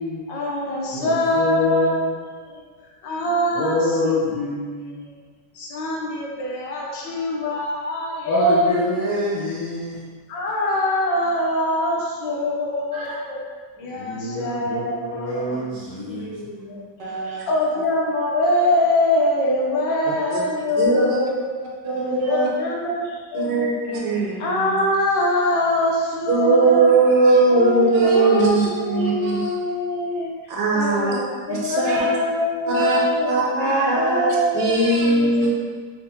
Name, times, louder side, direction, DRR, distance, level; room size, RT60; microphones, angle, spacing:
voice 1, 0.3-4.2 4.9-5.2 5.5-8.9 10.3-13.4 13.8-15.6 16.0-17.2 17.5-21.5 22.1-23.7 24.4-27.0 27.5-30.3 30.7-33.4 33.9-34.8 35.0-35.5, left 1 dB, 85° left, -3 dB, 1.5 m, -24 dB
voice 2, 0.9-2.1 3.5-5.0 8.3-10.0 12.9-13.2 13.9-16.4 17.2-17.4 35.0-35.3, left 2 dB, 30° left, -12 dB, 0.6 m, -26 dB
voice 3, 17.0-17.4 20.3-20.4 20.8-21.2 21.8-22.5 23.5-24.8 26.3-29.5 30.5-31.2 31.5-32.1 32.7-33.0 33.3-35.5, right 3 dB, 75° right, -3 dB, 1.4 m, -20 dB
3.6 x 3.6 x 2.8 m, 1.5 s
omnidirectional pair, 1.9 m